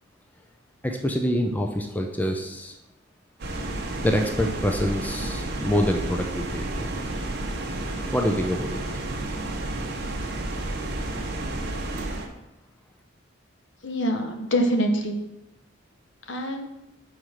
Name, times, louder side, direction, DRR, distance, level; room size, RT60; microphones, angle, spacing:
voice 1, 0.8-2.7 4.0-6.9 8.1-8.8, equal, 10° left, 3 dB, 0.5 m, -26 dB
sound 1, 3.4-12.3, right 2 dB, 55° right, 0.9 m, -31 dB
voice 2, 13.8-15.2 16.3-16.7, equal, 65° left, 5 dB, 0.9 m, -25 dB
5.0 x 4.8 x 5.6 m, 0.92 s
head